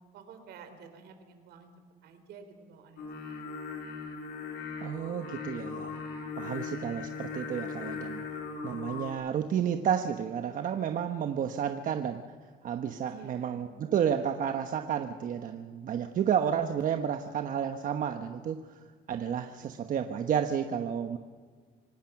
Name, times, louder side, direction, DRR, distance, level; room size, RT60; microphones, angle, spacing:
voice 1, 0.1-1.7 2.0-3.5 13.1-13.6 19.6-20.0, right 6 dB, 75° right, 8 dB, 3.5 m, -51 dB
Singing, 3.0-9.1, left 5 dB, 85° left, 4.6 m, -39 dB
voice 2, 4.8-6.0 6.4-8.2 8.6-12.2 12.6-18.8 19.1-21.2, right 8 dB, 55° right, 7 dB, 1.2 m, -31 dB
26.0 x 18.0 x 6.0 m, 1.5 s
cardioid pair, 110°, 17 cm